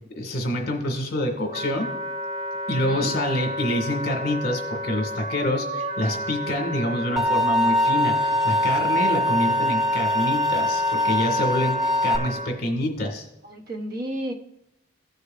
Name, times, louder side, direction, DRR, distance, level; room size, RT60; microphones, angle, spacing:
voice 1, 0.2-1.9 2.7-13.3, left 1 dB, 50° left, 2 dB, 1.9 m, -27 dB
Wind instrument woodwind instrument, 0.9-12.5, equal, 30° right, 1.7 m, -32 dB
voice 2, 2.7-3.1 13.4-14.3, right 1 dB, 50° right, 4 dB, 1.0 m, -32 dB
sound 1, 7.2-12.2, left 1 dB, ahead, 0.6 m, -23 dB
16.5 x 6.5 x 2.5 m, 0.87 s
head